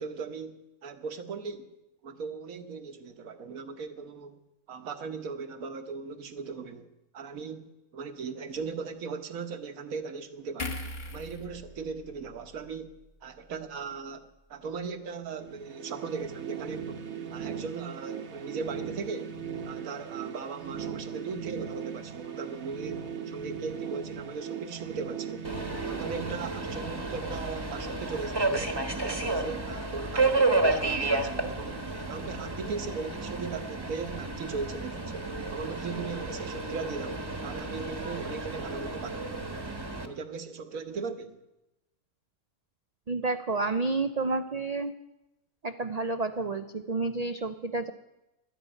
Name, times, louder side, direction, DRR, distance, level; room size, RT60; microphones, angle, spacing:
voice 1, 0.0-1.7 2.0-4.4 4.7-6.9 7.1-10.8 11.1-17.0 17.3-19.3 19.6-39.3 40.0-41.4, right 5 dB, 65° right, 1.5 m, -38 dB
sound 1, 10.6-14.0 14.3-14.5, left 2 dB, 35° left, 1.4 m, -41 dB
sound 2, 15.3-27.3, right 7 dB, 50° right, 1.3 m, -39 dB
Subway metro underground, 25.4-40.1, right 2 dB, 15° right, 1.1 m, -31 dB
voice 2, 43.1-44.9 45.6-47.9, right 3 dB, 85° right, 0.3 m, -30 dB
12.0 x 10.0 x 9.0 m
omnidirectional pair, 1.6 m